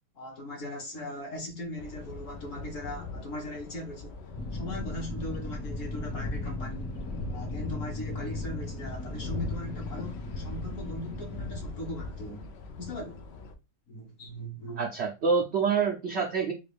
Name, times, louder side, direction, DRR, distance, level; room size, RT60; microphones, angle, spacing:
voice 1, 0.1-4.2 4.5-6.9 7.3-12.5 12.8-13.2 13.9-14.8, left 1 dB, 55° left, 1.3 m, -39 dB
sound 1, 1.8-13.5, left 3 dB, 80° left, 0.5 m, -40 dB
sound 2, 4.3-11.6, left 2 dB, 10° left, 0.6 m, -38 dB
voice 2, 14.8-16.5, right 5 dB, 70° right, 0.6 m, -26 dB
3.7 x 2.4 x 3.3 m
omnidirectional pair, 1.8 m